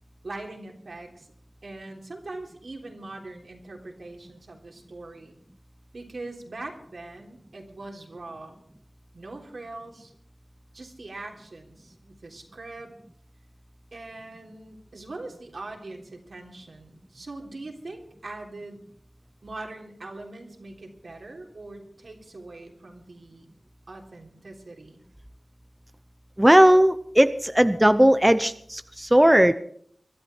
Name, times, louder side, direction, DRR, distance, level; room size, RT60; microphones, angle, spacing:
voice 1, 0.2-1.3 1.6-5.3 5.9-8.6 9.1-10.1 10.7-12.9 13.9-18.8 19.4-23.5 23.9-25.0, right 2 dB, 70° right, 1 dB, 3.4 m, -41 dB
voice 2, 26.4-29.5, right 1 dB, 10° right, 11 dB, 0.7 m, -17 dB
22.5 x 12.5 x 4.4 m, 0.63 s
wide cardioid pair, 75°, 0 cm